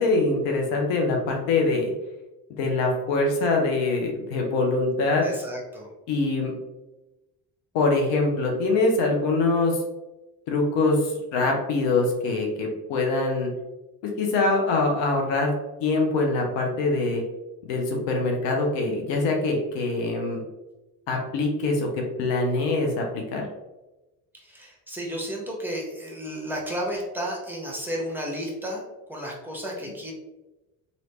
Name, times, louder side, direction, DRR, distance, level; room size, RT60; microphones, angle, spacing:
voice 1, 0.0-1.9 2.5-5.3 6.1-6.5 7.7-9.8 10.5-13.5 14.0-15.5 15.8-17.2 17.7-20.4 21.1-23.4, left 3 dB, 70° left, 1 dB, 0.9 m, -24 dB
voice 2, 5.2-5.9 24.4-28.8 29.1-30.1, equal, 5° right, -3 dB, 1.1 m, -32 dB
3.1 x 2.8 x 2.9 m, 1.0 s
hypercardioid pair, 60°, 46 cm